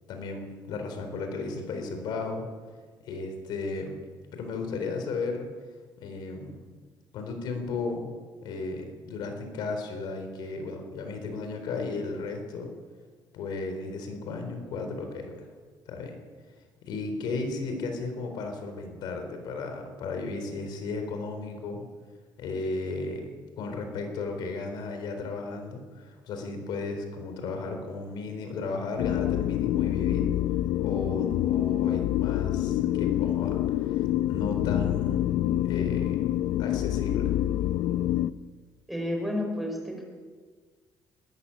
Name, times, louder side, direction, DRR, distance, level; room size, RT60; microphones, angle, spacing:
voice 1, 0.1-2.4 3.1-4.0 4.3-5.5 6.0-6.6 7.1-8.1 8.4-12.7 13.3-15.5 15.9-16.2 16.8-21.8 22.4-23.3 23.6-30.3 30.8-35.4 35.7-36.3 36.6-37.3, left 3 dB, 70° left, 5 dB, 4.1 m, -34 dB
sound 1, 29.0-38.3, left 13 dB, 85° left, 0.6 m, -26 dB
voice 2, 38.9-40.0, left 1 dB, ahead, 0 dB, 4.8 m, -31 dB
21.5 x 14.0 x 8.6 m, 1.5 s
cardioid pair, 180°, 8 cm